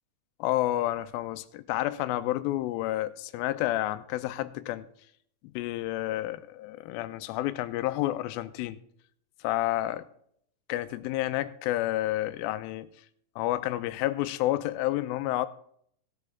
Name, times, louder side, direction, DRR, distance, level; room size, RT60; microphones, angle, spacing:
voice 1, 0.4-4.9 5.5-8.8 9.4-10.0 10.7-12.9 13.4-15.5, left 15 dB, 85° left, 2.4 m, -30 dB
17.0 x 6.7 x 3.8 m
omnidirectional pair, 4.3 m